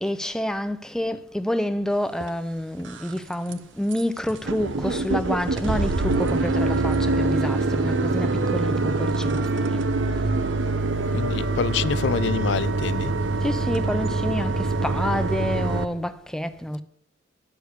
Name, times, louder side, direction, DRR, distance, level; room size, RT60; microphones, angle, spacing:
voice 1, 0.0-9.8 13.4-16.8, left 1 dB, 5° left, 0.5 m, -28 dB
Starting the Car, 2.2-2.3 2.8-3.2 3.5-3.6 3.9-4.0 4.3-15.8, right 3 dB, 75° right, 0.7 m, -24 dB
voice 2, 11.1-13.1, left 6 dB, 60° left, 0.3 m, -26 dB
9.7 x 6.4 x 8.2 m
head